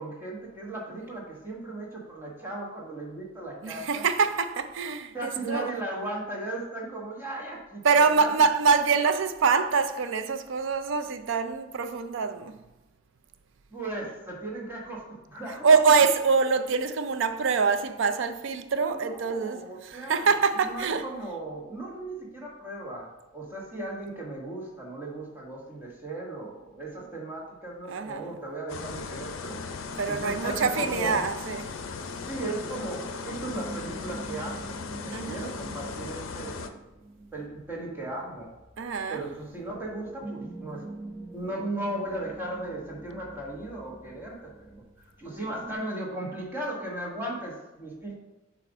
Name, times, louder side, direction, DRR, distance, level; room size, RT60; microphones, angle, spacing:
voice 1, 0.0-4.0 5.1-8.3 13.7-15.6 18.9-20.3 20.7-29.6 30.1-31.2 32.3-34.8 35.0-36.8 37.3-38.5 39.1-40.8 41.3-44.8 45.2-48.1, right 1 dB, 10° right, 1.4 m, -36 dB
voice 2, 3.6-5.7 7.8-12.6 15.5-21.1 27.9-28.4 30.0-31.8 35.1-35.5 38.8-39.2, right 5 dB, 65° right, 0.4 m, -25 dB
sound 1, 28.7-36.7, left 4 dB, 75° left, 0.5 m, -37 dB
sound 2, 32.4-45.8, right 2 dB, 30° right, 1.1 m, -45 dB
7.3 x 2.5 x 5.0 m
head